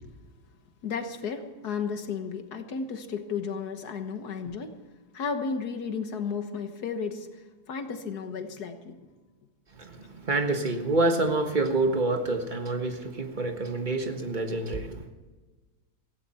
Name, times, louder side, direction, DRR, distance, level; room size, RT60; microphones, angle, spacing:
voice 1, 0.8-4.8 5.1-9.1 10.0-10.1, left 5 dB, 75° left, 1.8 m, -33 dB
voice 2, 9.8-15.0, right 2 dB, 30° right, 1.5 m, -27 dB
17.5 x 15.5 x 4.4 m
omnidirectional pair, 1.7 m